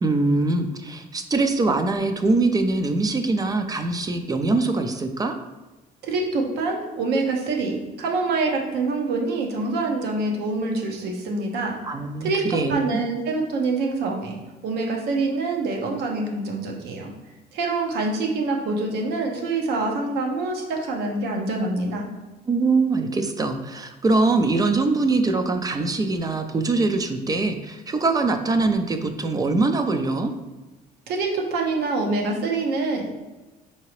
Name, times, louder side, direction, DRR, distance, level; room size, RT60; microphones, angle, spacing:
voice 1, 0.0-5.4 11.8-12.8 22.5-30.3, right 3 dB, 20° right, 6 dB, 0.4 m, -23 dB
voice 2, 6.0-11.8 12.2-12.4 12.7-14.4 14.6-17.1 17.5-22.1 31.1-33.1, right 3 dB, 80° right, 1 dB, 0.8 m, -25 dB
4.7 x 2.8 x 3.0 m, 1.1 s
cardioid pair, 110°, 17 cm